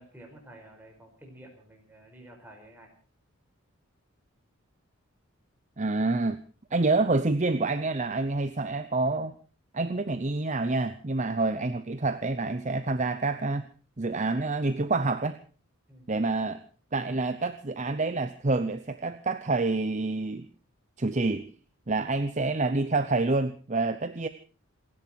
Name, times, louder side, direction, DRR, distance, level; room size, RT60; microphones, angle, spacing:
voice 1, 0.0-2.9 15.9-16.1, right 1 dB, 10° right, 1 dB, 5.0 m, -51 dB
voice 2, 5.8-6.4 6.7-9.3 9.7-13.6 14.0-15.4 16.1-16.6 16.9-20.5 21.0-21.5 21.9-24.3, right 3 dB, 35° right, 11 dB, 0.7 m, -27 dB
28.0 x 11.0 x 4.5 m, 0.39 s
head